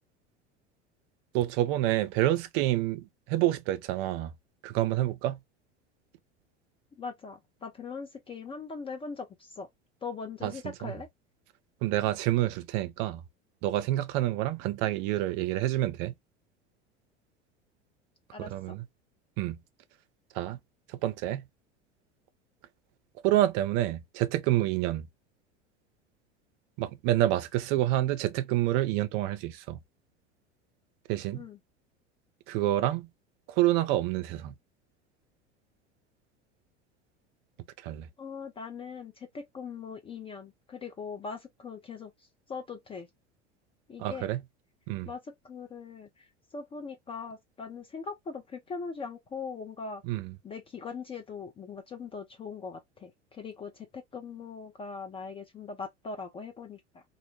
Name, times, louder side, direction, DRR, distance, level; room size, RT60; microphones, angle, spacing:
voice 1, 1.3-4.3 4.6-5.4 10.4-10.5 10.8-10.9 11.8-13.2 13.6-16.1 18.4-18.8 19.4-19.6 20.3-20.6 20.9-21.4 23.2-25.1 26.8-29.8 31.1-31.4 32.5-33.1 33.5-34.5 37.8-38.1 44.0-44.4 44.9-45.1 50.0-50.3, right 14 dB, 50° right, 0.5 m, -28 dB
voice 2, 7.0-9.7 10.0-11.1 18.3-18.8 31.3-31.6 38.2-43.1 43.9-44.3 45.1-50.0 50.4-57.0, left 5 dB, 15° left, 0.3 m, -41 dB
2.5 x 2.0 x 3.0 m
hypercardioid pair, 80°, 36 cm